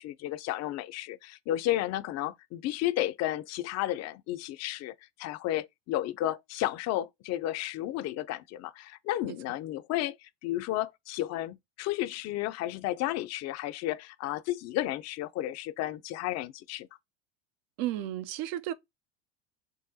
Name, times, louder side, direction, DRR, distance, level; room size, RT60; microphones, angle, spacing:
voice 1, 0.0-16.9, left 14 dB, 45° left, 0.5 m, -33 dB
voice 2, 17.8-18.7, right 13 dB, 60° right, 0.6 m, -33 dB
3.8 x 2.1 x 2.7 m
hypercardioid pair, 90°, 37 cm